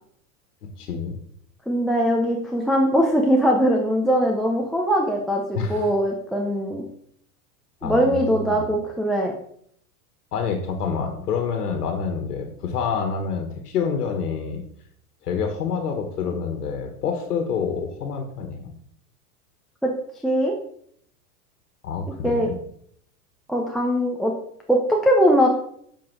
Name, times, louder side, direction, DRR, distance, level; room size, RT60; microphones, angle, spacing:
voice 1, 0.6-1.2 5.5-5.9 7.8-8.7 10.3-14.6 15.2-18.7 21.8-22.5, left 6 dB, 85° left, 5 dB, 1.5 m, -27 dB
voice 2, 1.7-6.8 7.8-9.3 19.8-19.9 20.2-20.5 22.2-22.5 23.5-24.3 24.7-25.5, equal, ahead, -1 dB, 0.5 m, -21 dB
7.8 x 5.0 x 4.6 m, 0.66 s
hypercardioid pair, 130°, 45 cm